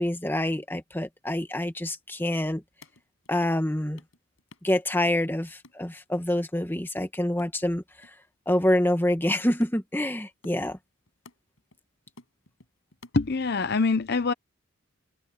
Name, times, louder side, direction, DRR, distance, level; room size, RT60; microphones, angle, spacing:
voice 1, 0.0-2.6 3.3-4.0 4.6-7.8 8.5-10.8, left 1 dB, 10° left, 1.3 m, -26 dB
sound 1, 2.5-3.7 4.0-4.8 5.1-6.4 6.7-8.2 8.5-8.6 8.9-11.8 12.1-13.4, left 2 dB, 90° left, 5.7 m, -54 dB
voice 2, 13.1-14.3, left 4 dB, 50° left, 0.7 m, -24 dB
head